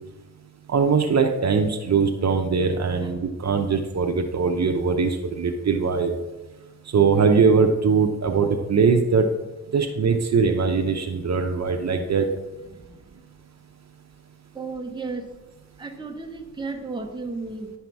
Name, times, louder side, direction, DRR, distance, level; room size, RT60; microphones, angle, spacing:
voice 1, 0.7-6.2 6.9-9.3 9.7-12.3, right 5 dB, 60° right, 4 dB, 0.8 m, -21 dB
voice 2, 12.6-13.1 14.5-15.3 15.8-17.7, right 3 dB, 15° right, 2 dB, 1.0 m, -34 dB
10.5 x 5.7 x 4.6 m, 1.1 s
wide cardioid pair, 105°, 31 cm